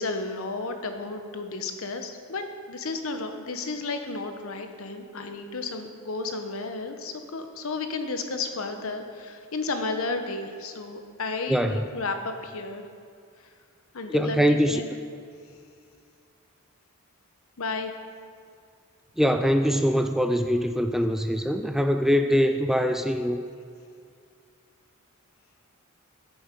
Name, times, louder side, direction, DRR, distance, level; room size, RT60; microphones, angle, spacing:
voice 1, 0.0-12.9 13.9-14.9 17.6-17.9, left 3 dB, 65° left, 6 dB, 1.0 m, -33 dB
voice 2, 11.5-11.8 14.1-14.8 19.2-23.4, equal, ahead, 7 dB, 0.3 m, -23 dB
14.0 x 7.1 x 5.2 m, 2.2 s
head